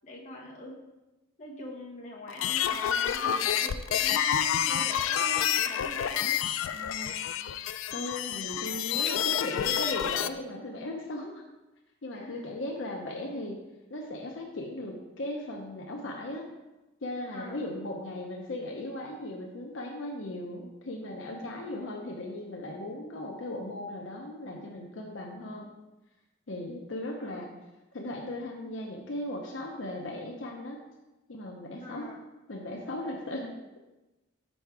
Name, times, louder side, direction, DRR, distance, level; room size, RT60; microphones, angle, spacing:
voice 1, 0.0-0.8 1.4-6.4 12.1-12.4 17.3-17.6 27.2-27.4 31.8-32.2, left 1 dB, 35° left, -3 dB, 1.1 m, -43 dB
sound 1, 2.3-10.3, left 10 dB, 90° left, 0.3 m, -28 dB
voice 2, 6.7-7.2 7.9-11.4 12.0-13.6 13.9-16.4 17.0-25.7 26.5-27.5 27.9-30.8 31.3-32.1 32.5-33.5, left 1 dB, 70° left, 1 dB, 0.7 m, -37 dB
5.8 x 4.1 x 4.7 m, 1.0 s
head